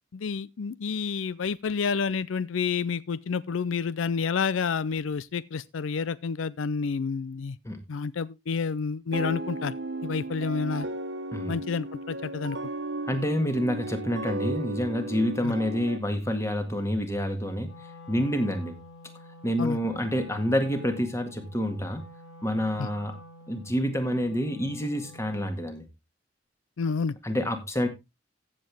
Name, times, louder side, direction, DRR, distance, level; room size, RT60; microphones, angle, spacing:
voice 1, 0.1-7.6 7.9-9.8 10.0-10.9 11.5-12.6 15.4-15.5 19.6-19.8 22.8-22.9 26.8-27.2, left 5 dB, 85° left, 0.5 m, -29 dB
sound 1, 9.1-16.0, right 2 dB, 65° right, 1.3 m, -35 dB
voice 2, 13.1-17.7 18.1-18.7 19.4-22.0 22.4-23.2 23.5-25.8 27.2-27.9, equal, 15° left, 1.9 m, -28 dB
Wind instrument woodwind instrument, 17.6-25.6, left 1 dB, 60° left, 4.2 m, -49 dB
15.0 x 7.6 x 3.4 m
head